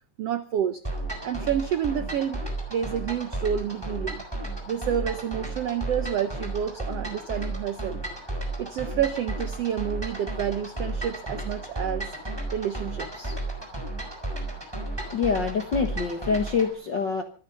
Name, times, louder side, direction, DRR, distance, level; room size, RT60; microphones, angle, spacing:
voice 1, 0.2-0.8 1.2-4.2 4.7-8.0 8.6-12.1 12.5-13.4, right 9 dB, 80° right, 12 dB, 1.3 m, -29 dB
sound 1, 0.8-16.7, right 2 dB, 5° right, 4.4 m, -33 dB
voice 2, 14.9-17.2, left 5 dB, 60° left, 6 dB, 1.1 m, -26 dB
25.0 x 10.0 x 5.5 m, 0.39 s
omnidirectional pair, 4.1 m